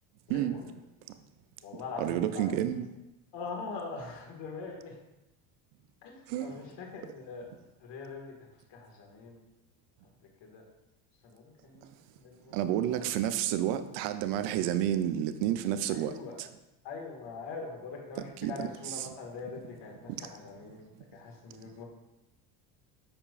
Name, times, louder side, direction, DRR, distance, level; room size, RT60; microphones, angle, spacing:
voice 1, 0.3-0.7 1.6-2.5 3.3-5.0 6.0-7.5 7.8-8.3 8.7-9.4 10.4-10.6 11.2-13.1 15.9-16.4 16.8-21.9, left 4 dB, 55° left, 1.9 m, -43 dB
voice 2, 1.7-2.9 6.3-6.5 12.5-16.5 18.4-18.7 19.0-19.1 20.1-20.3, right 11 dB, 70° right, 0.6 m, -30 dB
6.8 x 5.6 x 2.5 m
supercardioid pair, 90°, 50 cm